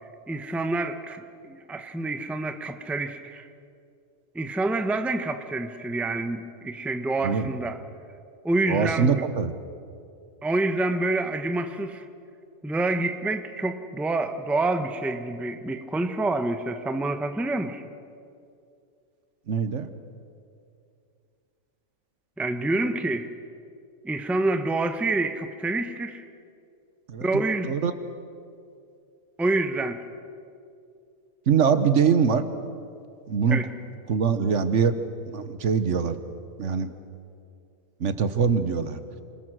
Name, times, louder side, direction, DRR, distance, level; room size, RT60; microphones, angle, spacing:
voice 1, 0.3-3.5 4.3-7.8 8.4-9.2 10.4-12.0 12.6-17.8 22.4-23.3 24.0-26.2 27.2-27.7 29.4-30.0 33.5-33.7, right 2 dB, ahead, 8 dB, 0.7 m, -27 dB
voice 2, 8.7-9.5 19.5-19.9 27.1-27.3 27.6-27.9 31.5-32.4 33.3-33.6 34.1-35.0 35.3-36.2 36.6-36.9 38.0-39.0, right 6 dB, 65° right, 11 dB, 1.3 m, -23 dB
26.0 x 20.0 x 6.2 m, 2.5 s
omnidirectional pair, 1.4 m